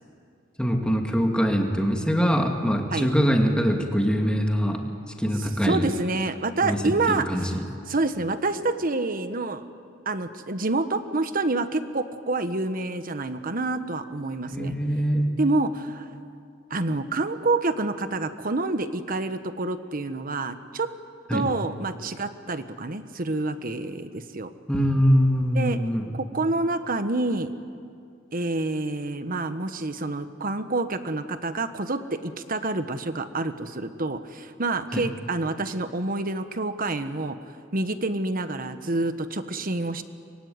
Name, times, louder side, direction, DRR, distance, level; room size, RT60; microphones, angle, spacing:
voice 1, 0.6-4.9 5.2-5.9 6.6-7.6 14.5-15.3 21.3-21.5 24.7-26.1 34.9-35.0, equal, 5° left, 2 dB, 2.5 m, -23 dB
voice 2, 5.6-7.2 7.5-7.6 7.9-9.6 10.0-14.7 15.4-16.1 16.7-20.9 21.3-24.5 25.5-25.8 26.1-27.5 28.3-37.4 37.7-40.0, right 2 dB, 45° right, 10 dB, 1.3 m, -27 dB
24.5 x 22.0 x 9.5 m, 2.3 s
head